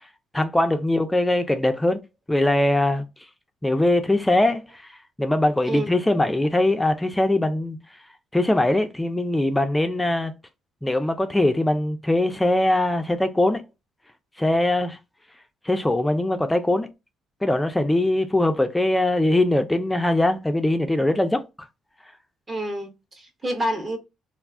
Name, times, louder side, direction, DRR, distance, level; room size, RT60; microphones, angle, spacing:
voice 1, 0.3-2.0 2.3-3.1 3.6-7.8 8.3-10.3 10.8-13.6 14.4-15.0 15.6-16.9 17.4-21.4, left 1 dB, 10° left, 0.3 m, -21 dB
voice 2, 5.7-6.0 22.5-24.0, right 1 dB, 30° right, 0.9 m, -28 dB
2.3 x 2.3 x 3.4 m
cardioid pair, 100°, 0 cm